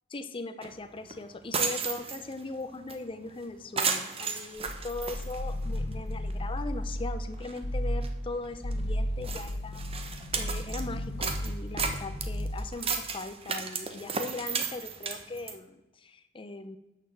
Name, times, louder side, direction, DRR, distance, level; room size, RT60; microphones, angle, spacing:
voice 1, 0.1-9.8 10.4-16.8, left 3 dB, 25° left, 9 dB, 0.6 m, -39 dB
sound 1, 0.6-0.7 1.1-1.2 1.4-2.4 2.9-3.0 3.3-3.4 3.8-5.9 6.3-6.4 7.0-7.1 7.3-7.6 8.0-8.1 8.7-8.8 9.2-10.8 11.2-15.6, right 5 dB, 30° right, 1.0 m, -33 dB
sound 2, 4.6-7.2 7.6-8.1 8.5-12.8, equal, 50° left, 1.3 m, -34 dB
9.5 x 6.7 x 7.1 m, 1.0 s
head